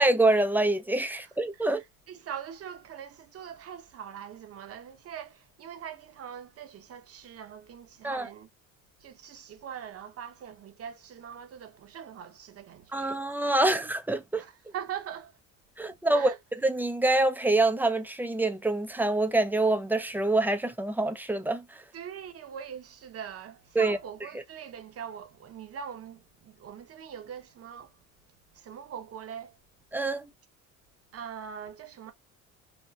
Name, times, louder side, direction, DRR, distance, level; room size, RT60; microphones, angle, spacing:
voice 1, 0.0-1.8 8.0-8.3 12.9-14.4 15.8-16.3 16.6-21.8 23.8-24.0 29.9-30.3, right 2 dB, 5° right, 0.4 m, -26 dB
voice 2, 1.6-8.5 9.0-13.2 14.4-15.3 16.1-16.4 21.9-28.0 28.5-29.6 31.1-32.1, right 8 dB, 45° right, 0.8 m, -42 dB
4.1 x 2.1 x 2.2 m
cardioid pair, 90°, 33 cm